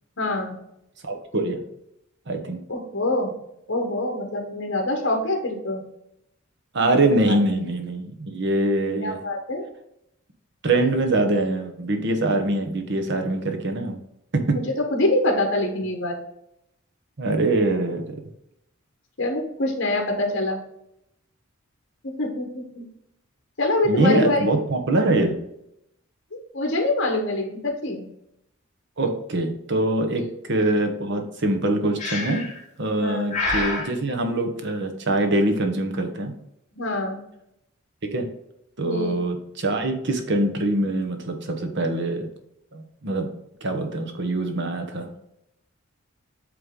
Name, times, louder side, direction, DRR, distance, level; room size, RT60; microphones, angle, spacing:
voice 1, 0.2-0.6 2.7-3.3 3.7-5.8 7.3-7.4 9.0-9.7 14.5-16.2 19.2-20.6 22.0-22.8 23.6-24.5 26.3-28.1 30.1-30.3 33.0-33.3 36.7-37.2 38.8-39.1, left 2 dB, 60° left, 2 dB, 1.2 m, -25 dB
voice 2, 1.0-1.6 2.3-2.6 6.7-9.2 10.6-14.0 14.3-14.6 17.2-18.1 23.8-25.4 29.0-32.4 32.8-36.3 38.1-38.3 38.8-42.3 42.7-43.3 43.6-45.1, right 2 dB, 60° right, 5 dB, 1.1 m, -23 dB
Breathing, 32.0-32.6 33.3-33.9, left 2 dB, 35° left, 1.6 m, -27 dB
8.1 x 3.3 x 3.7 m, 0.79 s
head